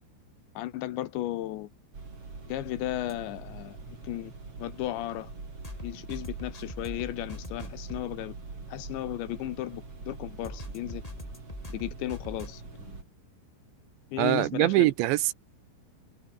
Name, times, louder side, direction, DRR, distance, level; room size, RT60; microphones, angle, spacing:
voice 1, 0.5-1.7 2.5-4.3 4.6-5.3 5.8-8.3 8.7-11.0 11.7-13.0 14.1-14.9, left 14 dB, 75° left, 3.2 m, -35 dB
sound 1, 1.9-13.0, right 4 dB, 30° right, 5.6 m, -44 dB
sound 2, 3.1-3.2 5.6-8.0 10.4-12.5, left 1 dB, 5° left, 7.2 m, -41 dB
voice 2, 14.2-15.3, right 17 dB, 85° right, 2.8 m, -23 dB
omnidirectional pair, 5.6 m